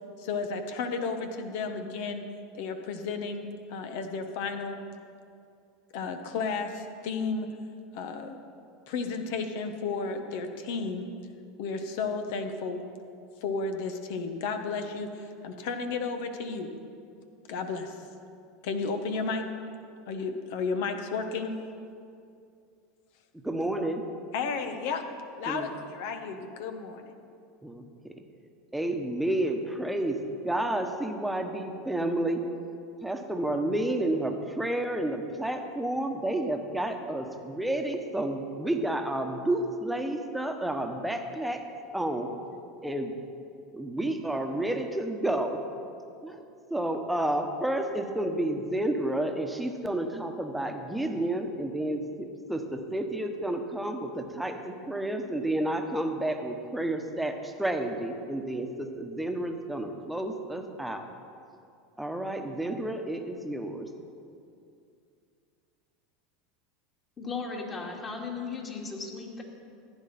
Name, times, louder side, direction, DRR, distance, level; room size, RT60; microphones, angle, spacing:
voice 1, 0.2-2.2 2.5-4.8 5.9-7.5 7.9-8.4 8.9-11.0 11.6-12.8 13.4-16.7 17.5-17.9 18.6-19.5 20.1-21.5 24.3-25.0 25.4-27.1, left 4 dB, 65° left, 7 dB, 1.1 m, -33 dB
voice 2, 23.4-24.1 25.5-25.7 27.6-28.2 28.7-32.4 33.0-41.6 41.9-42.3 42.8-43.1 43.7-45.6 46.2-46.4 46.7-61.0 62.0-63.9, right 1 dB, 5° right, 5 dB, 1.2 m, -30 dB
voice 3, 67.2-69.4, left 4 dB, 30° left, -1 dB, 2.5 m, -36 dB
15.0 x 9.9 x 4.3 m, 2.5 s
hypercardioid pair, 95°, 0 cm